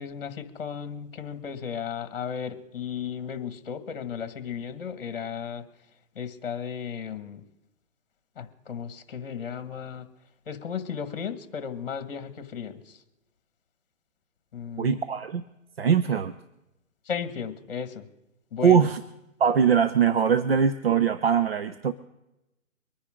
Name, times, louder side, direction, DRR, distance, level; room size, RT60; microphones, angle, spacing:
voice 1, 0.0-5.6 6.1-7.4 8.3-10.1 10.4-13.0 14.5-15.0 17.0-18.1 18.5-18.9, left 7 dB, 40° left, 10 dB, 1.8 m, -35 dB
voice 2, 14.8-15.4 15.8-16.3 18.6-19.0 19.4-21.9, right 7 dB, 45° right, 10 dB, 0.7 m, -22 dB
24.5 x 9.9 x 3.7 m, 0.93 s
hypercardioid pair, 165°, 42 cm